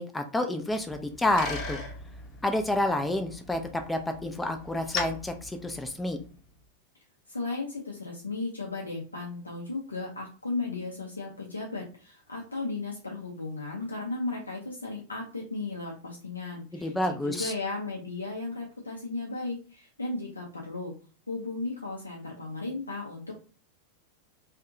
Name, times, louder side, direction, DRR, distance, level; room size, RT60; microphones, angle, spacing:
voice 1, 0.0-1.8 2.4-6.2 16.7-17.5, left 1 dB, 10° left, 6 dB, 0.3 m, -29 dB
Bicycle, 0.7-6.4, left 3 dB, 35° left, 0.8 m, -39 dB
voice 2, 7.3-20.9 21.3-23.3, left 3 dB, 80° left, -2 dB, 0.4 m, -35 dB
2.6 x 2.1 x 2.5 m, 0.39 s
figure-of-eight pair, 90°, 0 cm